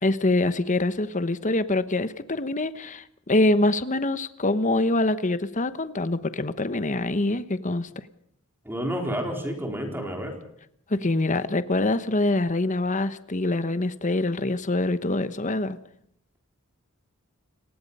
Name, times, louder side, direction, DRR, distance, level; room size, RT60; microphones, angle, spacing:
voice 1, 0.0-7.9 10.9-15.8, left 2 dB, 35° left, 1.1 m, -25 dB
voice 2, 8.6-10.4, equal, 10° right, 4.0 m, -30 dB
29.5 x 19.5 x 5.5 m
head